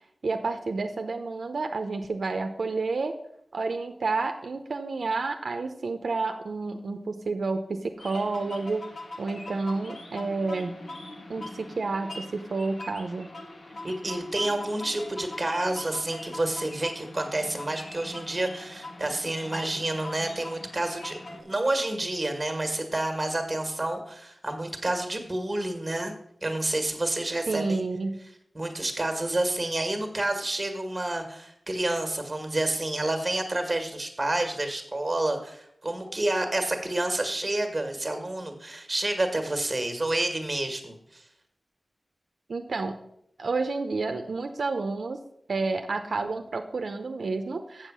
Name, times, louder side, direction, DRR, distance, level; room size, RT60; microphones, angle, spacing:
voice 1, 0.2-3.1 3.5-8.9 9.2-10.7 11.3-13.3 27.5-28.2 42.5-43.0 43.4-45.2 45.5-47.9, right 3 dB, 80° right, 6 dB, 0.7 m, -30 dB
sound 1, 8.0-21.4, left 2 dB, 75° left, 1.8 m, -42 dB
voice 2, 13.8-26.1 26.4-27.8 28.5-41.2, right 2 dB, 25° right, 5 dB, 1.6 m, -29 dB
7.4 x 7.4 x 6.1 m, 0.74 s
wide cardioid pair, 100°, 0 cm